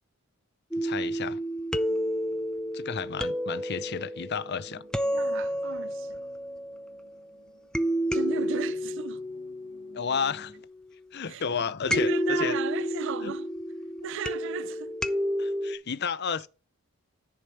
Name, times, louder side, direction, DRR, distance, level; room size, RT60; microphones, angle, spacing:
sound 1, 0.7-7.1 7.7-10.7 11.9-15.7, equal, 5° left, 0.4 m, -30 dB
voice 1, 0.8-1.4 2.7-4.8 9.9-10.5 11.1-12.6 13.2-13.3 15.4-16.5, left 6 dB, 50° left, 0.6 m, -32 dB
sound 2, 1.9-10.7, right 1 dB, 40° right, 1.6 m, -58 dB
voice 2, 5.1-6.2 8.1-9.2 11.3-11.4 11.8-13.5 14.0-15.0, right 8 dB, 55° right, 0.4 m, -35 dB
10.5 x 4.9 x 5.5 m
head